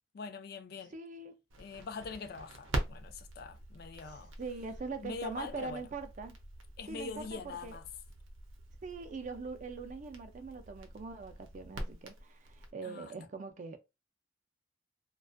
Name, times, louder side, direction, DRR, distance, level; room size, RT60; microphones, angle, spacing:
voice 1, 0.1-1.0 1.6-4.3 5.0-5.8 6.8-7.8 12.8-13.1, left 4 dB, 50° left, 0.3 m, -43 dB
voice 2, 0.9-1.4 4.1-6.3 6.9-7.8 8.8-13.8, right 4 dB, 40° right, 0.4 m, -42 dB
Crackle, 1.5-12.7, right 1 dB, 85° right, 0.6 m, -44 dB
2.4 x 2.2 x 2.4 m
head